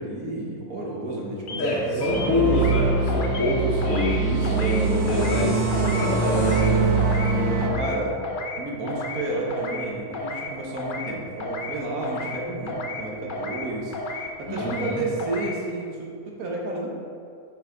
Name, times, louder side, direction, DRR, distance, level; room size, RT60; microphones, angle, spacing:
voice 1, 0.0-2.6 3.9-4.8 7.7-8.2 8.6-17.0, right 2 dB, 85° right, -2 dB, 1.6 m, -31 dB
sound 1, 1.5-1.7 2.0-2.8 3.1-3.5 3.8-4.2 4.4-4.8 5.1-5.4 5.7-6.1 6.3-6.7 7.0-7.3 7.6-8.0 8.2-8.6 8.9-9.2 9.5-9.9 10.1-10.5 10.8-11.1 11.4-11.8 12.0-12.4 12.7-13.0 13.3-13.7 13.9-14.3 14.6-14.9 15.2-15.5, left 2 dB, 55° left, 0.6 m, -33 dB
voice 2, 1.6-6.8 14.5-15.0, left 1 dB, 75° left, -9 dB, 1.6 m, -26 dB
sound 2, 2.1-7.7, right 4 dB, 40° right, 0.9 m, -23 dB
5.5 x 5.5 x 3.9 m, 2.4 s
omnidirectional pair, 1.5 m